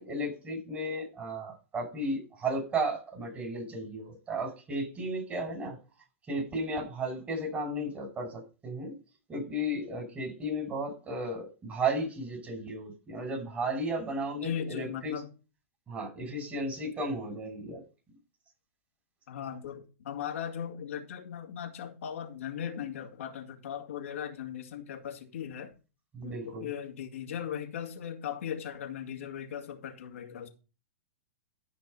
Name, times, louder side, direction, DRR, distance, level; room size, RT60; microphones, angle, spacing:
voice 1, 0.0-5.8 6.3-8.9 9.3-15.1 15.9-17.8 26.1-26.7, right 1 dB, 20° right, 6.4 m, -34 dB
voice 2, 14.4-15.3 19.3-25.7 26.2-30.5, left 9 dB, 75° left, 2.4 m, -38 dB
14.0 x 5.4 x 5.5 m
hypercardioid pair, 125°, 7 cm